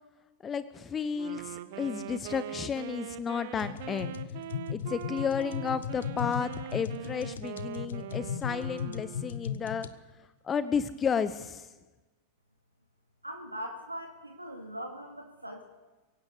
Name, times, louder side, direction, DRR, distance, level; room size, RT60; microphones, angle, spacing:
voice 1, 0.4-4.1 4.7-9.9 10.4-11.7, left 6 dB, 20° left, 13 dB, 1.0 m, -32 dB
Wind instrument woodwind instrument, 1.1-9.5, right 11 dB, 50° right, 1.1 m, -42 dB
sound 1, 3.6-9.9, left 8 dB, 65° left, 1.0 m, -37 dB
voice 2, 13.2-15.6, equal, 85° right, 3 dB, 2.2 m, -40 dB
23.5 x 16.5 x 8.3 m, 1.2 s
figure-of-eight pair, 90°, 0 cm